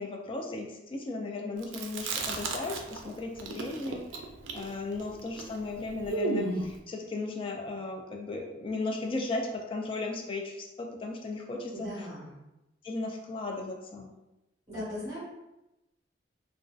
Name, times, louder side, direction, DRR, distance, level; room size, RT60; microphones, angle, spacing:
voice 1, 0.0-4.0 4.5-11.9 12.8-14.1, left 3 dB, 30° left, 1 dB, 0.3 m, -36 dB
Chewing mastication, 1.6-3.1 3.4-6.8, right 3 dB, 85° right, 0.4 m, -34 dB
voice 2, 11.7-12.4 14.7-15.2, left 1 dB, 25° right, -11 dB, 1.1 m, -38 dB
2.5 x 2.3 x 2.3 m, 0.95 s
head